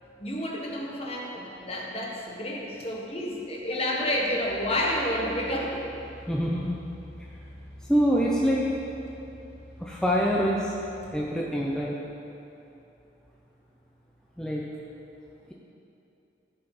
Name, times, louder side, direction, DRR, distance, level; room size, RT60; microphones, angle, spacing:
voice 1, 0.2-5.8, left 1 dB, 35° left, -2 dB, 1.5 m, -30 dB
sound 1, 2.8-3.0 3.9-11.9, equal, 70° right, 1.7 m, -47 dB
voice 2, 6.3-6.8 7.9-8.7 9.8-10.7 11.1-12.0 14.4-14.6, equal, 5° left, -4 dB, 0.7 m, -25 dB
15.0 x 5.6 x 5.9 m, 2.9 s
head